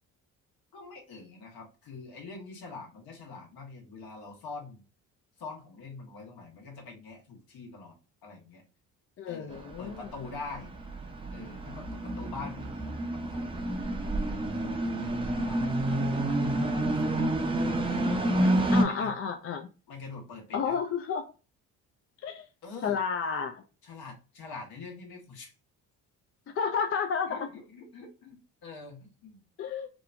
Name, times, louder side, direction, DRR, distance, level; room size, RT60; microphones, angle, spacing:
voice 1, 0.7-4.8 5.4-7.9 8.2-8.6 9.3-10.7 11.3-14.5 15.0-15.7 16.2-17.4 18.3-19.1 19.9-20.8 22.6-23.0 23.8-25.5 27.3-29.4, left 3 dB, 60° left, 1.2 m, -45 dB
voice 2, 9.2-10.0 18.7-19.7 20.5-21.2 22.2-22.4 22.8-23.6 26.6-27.5 29.6-29.9, left 6 dB, 35° left, 0.4 m, -31 dB
sound 1, 9.5-18.8, right 1 dB, 15° right, 0.6 m, -29 dB
2.9 x 2.1 x 2.4 m
hypercardioid pair, 60°, 41 cm